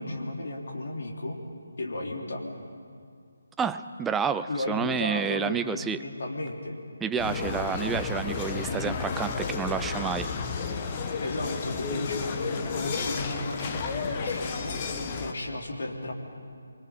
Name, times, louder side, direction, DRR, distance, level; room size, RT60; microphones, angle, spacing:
voice 1, 0.0-1.4 1.8-2.4 4.5-6.8 7.2-7.5 11.2-14.8 15.2-16.1, left 2 dB, 55° left, 0 dB, 3.9 m, -34 dB
voice 2, 3.6-6.0 7.0-10.3, right 6 dB, 10° right, 11 dB, 0.5 m, -29 dB
sound 1, 7.2-15.3, left 4 dB, 25° left, 1.4 m, -32 dB
29.0 x 23.5 x 5.3 m, 2.2 s
figure-of-eight pair, 150°, 0 cm